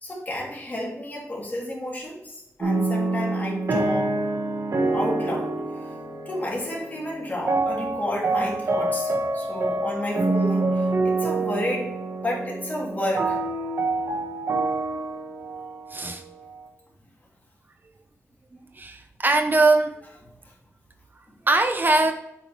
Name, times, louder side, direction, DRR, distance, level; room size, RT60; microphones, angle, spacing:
voice 1, 0.0-4.1 4.9-5.5 6.3-11.9 12.2-13.4, left 1 dB, 30° left, -3 dB, 2.9 m, -31 dB
sound 1, 2.6-16.6, right 2 dB, 60° right, 1.5 m, -26 dB
voice 2, 15.9-16.2 18.7-20.0 21.5-22.1, right 2 dB, 35° right, 6 dB, 0.7 m, -21 dB
8.2 x 5.5 x 3.2 m, 0.85 s
wide cardioid pair, 85°, 5 cm